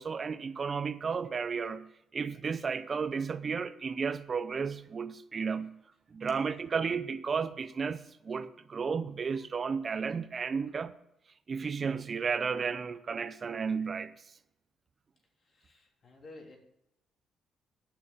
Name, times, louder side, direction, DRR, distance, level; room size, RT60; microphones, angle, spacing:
voice 1, 0.0-5.8 6.1-10.9 11.5-14.2, right 5 dB, 45° right, 0.6 m, -33 dB
voice 2, 15.4-16.6, left 2 dB, 55° left, 3.2 m, -52 dB
9.3 x 6.8 x 8.8 m
cardioid pair, 75°, 0 cm